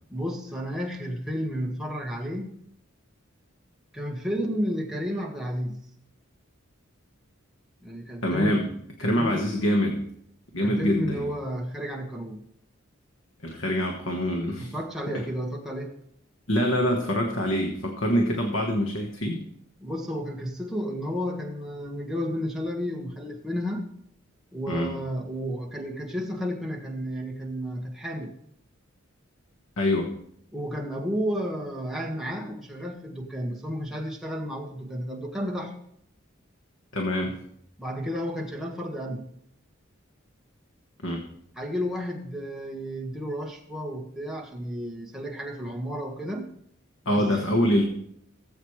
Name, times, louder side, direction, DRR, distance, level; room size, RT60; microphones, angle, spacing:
voice 1, 0.1-2.5 3.9-5.9 7.8-8.6 9.0-9.4 10.6-12.4 14.6-15.9 19.8-23.9 24.5-28.3 30.5-35.8 37.8-39.3 41.6-46.5 47.0-47.5, equal, ahead, -1 dB, 1.6 m, -32 dB
voice 2, 8.2-8.7 9.0-10.1 10.5-11.3 13.4-14.7 15.1-15.2 16.5-19.5 24.7-25.0 29.8-30.2 36.9-37.4 41.0-41.3 47.0-47.8, equal, 70° left, 2 dB, 1.4 m, -25 dB
18.5 x 8.0 x 3.3 m, 0.69 s
head